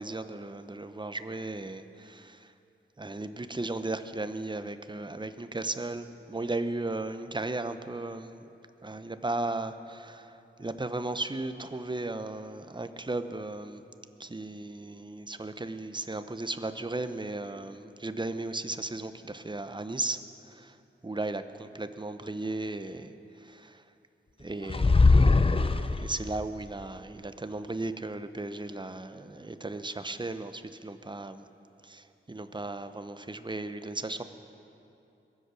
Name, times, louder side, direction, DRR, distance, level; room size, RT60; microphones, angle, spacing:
voice 1, 0.0-2.5 3.0-8.4 8.8-13.8 14.2-20.2 20.5-20.8 21.0-23.1 23.4-23.8 24.4-31.5 31.8-34.2, right 2 dB, 20° right, 10 dB, 0.7 m, -36 dB
sound 1, 24.7-26.3, left 3 dB, 25° left, 0.5 m, -21 dB
22.0 x 8.1 x 6.4 m, 2.8 s
wide cardioid pair, 65°, 21 cm